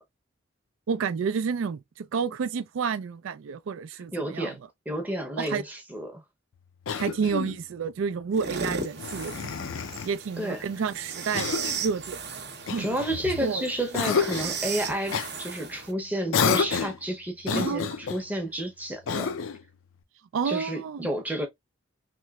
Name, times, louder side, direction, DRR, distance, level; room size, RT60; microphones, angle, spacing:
voice 1, 0.9-4.5 5.4-5.6 7.0-9.5 10.0-12.9 13.4-13.6 17.5-17.9 20.3-21.1, right 6 dB, 85° right, 0.4 m, -30 dB
voice 2, 4.1-4.6 4.9-6.2 10.4-10.7 12.8-19.3 20.4-21.5, right 1 dB, 10° right, 0.7 m, -31 dB
Cough, 6.8-7.6 9.0-10.1 11.3-11.9 12.7-13.5 13.9-14.6 15.1-15.3 16.3-17.0 17.4-18.2 19.1-19.6, left 6 dB, 90° left, 0.5 m, -29 dB
sound 1, 8.3-15.9, right 5 dB, 55° right, 0.7 m, -36 dB
3.1 x 2.9 x 2.3 m
head